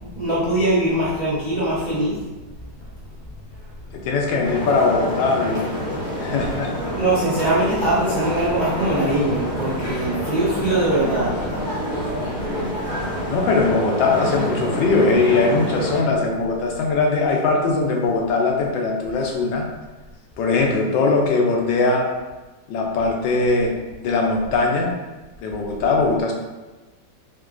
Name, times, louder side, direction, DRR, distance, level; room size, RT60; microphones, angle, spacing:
voice 1, 0.0-2.2 7.0-11.4, right 1 dB, 70° right, -10 dB, 0.4 m, -21 dB
voice 2, 3.9-5.7 6.2-6.7 13.3-19.6 20.4-22.1 22.7-23.7 24.0-24.9 25.4-26.3, left 3 dB, 85° left, 1 dB, 1.2 m, -20 dB
sound 1, 4.4-16.0, equal, 40° left, 0.8 m, -27 dB
3.2 x 2.9 x 2.4 m, 1.2 s
omnidirectional pair, 2.0 m